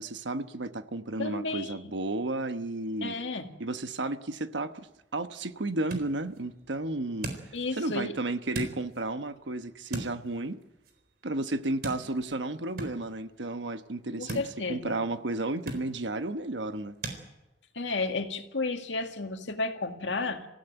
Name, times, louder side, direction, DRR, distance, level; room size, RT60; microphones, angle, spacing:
voice 1, 0.0-3.2 3.6-4.9 5.1-7.3 7.7-10.6 11.2-14.4 14.7-17.0, right 2 dB, 80° right, 10 dB, 1.2 m, -33 dB
voice 2, 1.2-1.9 3.0-3.5 7.5-8.2 14.2-15.0 17.7-20.5, left 3 dB, 85° left, 5 dB, 2.0 m, -32 dB
sound 1, 4.7-17.2, right 2 dB, 60° right, 4.1 m, -44 dB
24.5 x 16.0 x 9.1 m, 1.0 s
head